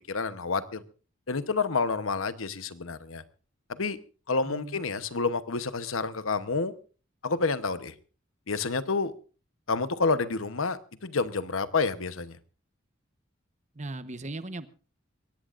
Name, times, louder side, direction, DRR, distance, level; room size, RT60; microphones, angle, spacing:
voice 1, 0.1-0.8 1.3-3.2 3.7-4.0 4.3-6.7 7.2-7.9 8.5-9.1 9.7-12.4, left 4 dB, 85° left, 1.0 m, -29 dB
voice 2, 4.4-4.8 13.8-14.7, right 2 dB, 35° right, 1.0 m, -38 dB
23.0 x 17.5 x 2.5 m
head